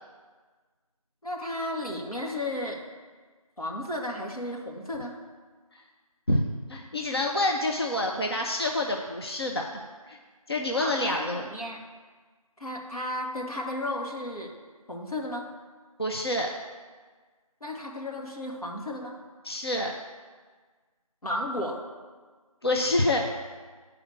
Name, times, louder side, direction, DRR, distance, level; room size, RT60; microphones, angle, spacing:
voice 1, 1.2-2.8 3.6-5.2 10.8-11.8 12.6-14.5 14.9-15.5 17.6-19.2 21.2-21.8, left 1 dB, 80° left, 0 dB, 2.0 m, -33 dB
voice 2, 6.7-10.2 10.5-11.4 16.0-16.5 19.4-19.9 22.6-23.3, left 1 dB, 45° left, 1 dB, 0.7 m, -27 dB
8.4 x 4.9 x 7.4 m, 1.4 s
figure-of-eight pair, 170°, 19 cm